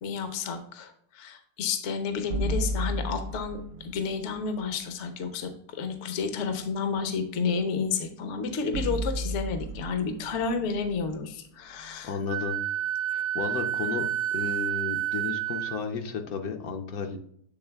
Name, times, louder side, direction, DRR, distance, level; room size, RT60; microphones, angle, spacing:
voice 1, 0.0-12.2, left 5 dB, 55° left, 8 dB, 0.9 m, -31 dB
sound 1, 2.3-4.5 8.7-12.0, right 1 dB, 75° right, 1.1 m, -33 dB
voice 2, 12.0-12.6 13.1-14.1 14.3-17.2, left 6 dB, 75° left, 4 dB, 1.2 m, -33 dB
Wind instrument woodwind instrument, 12.3-15.8, right 12 dB, 55° right, 0.7 m, -29 dB
7.9 x 3.6 x 3.4 m, 0.67 s
omnidirectional pair, 1.6 m